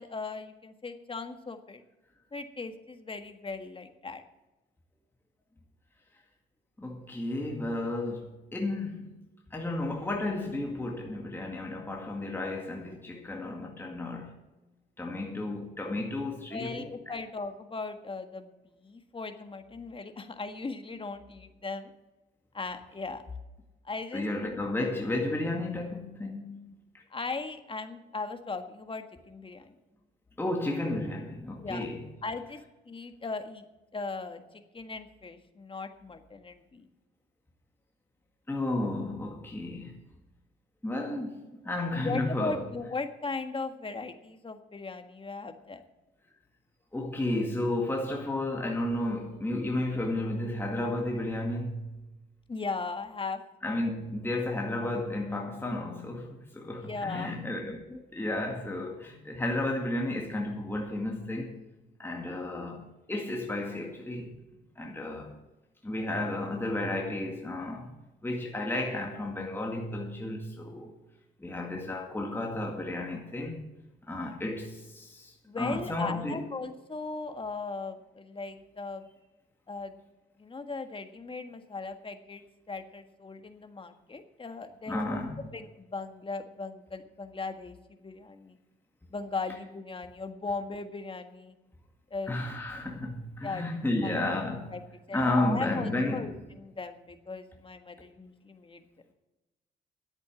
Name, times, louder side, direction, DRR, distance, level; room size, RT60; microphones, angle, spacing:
voice 1, 0.0-1.8 2.3-4.2 16.5-18.5 18.8-21.9 22.5-23.2 23.8-24.6 27.1-29.7 31.6-31.9 32.2-32.6 32.8-33.6 33.9-34.4 34.7-36.8 41.9-45.8 52.5-53.4 54.4-54.5 54.8-54.9 56.8-57.3 71.5-71.6 75.5-79.0 79.7-79.9 80.4-82.4 82.7-88.6 89.1-91.5 92.1-92.3 93.4-94.2 94.7-94.8 95.1-98.8, left 3 dB, 25° left, 1.6 m, -38 dB
voice 2, 6.8-9.2 9.5-14.4 15.0-17.2 24.1-27.0 30.4-32.0 38.5-40.0 40.8-42.6 46.9-52.0 53.6-61.6 62.0-64.4 64.8-65.3 65.8-67.9 68.2-70.9 71.4-73.6 74.1-76.5 84.9-85.4 92.3-94.8 95.1-96.3, left 1 dB, 10° left, 2.0 m, -33 dB
11.0 x 8.4 x 8.4 m
cardioid pair, 90°, 20 cm